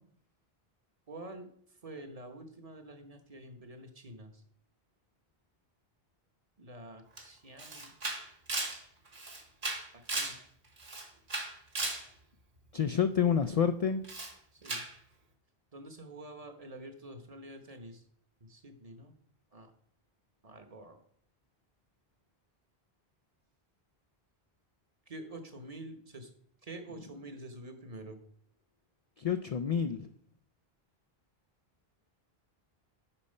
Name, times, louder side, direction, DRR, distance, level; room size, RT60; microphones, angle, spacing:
voice 1, 1.1-1.5 1.8-4.4 6.6-7.9 9.9-10.4 14.6-14.9 15.7-18.0 18.4-19.1 19.5-19.7 20.4-21.0 25.1-26.3 26.6-28.2, right 1 dB, 40° right, 6 dB, 1.0 m, -47 dB
Camera, 7.2-7.3 7.6-10.4 10.8-12.1 14.0-14.3 14.6-14.9, right 2 dB, 55° right, 1.5 m, -36 dB
voice 2, 12.7-14.0 29.2-30.1, left 7 dB, 55° left, 10 dB, 0.4 m, -28 dB
8.9 x 4.2 x 5.4 m, 0.63 s
omnidirectional pair, 1.0 m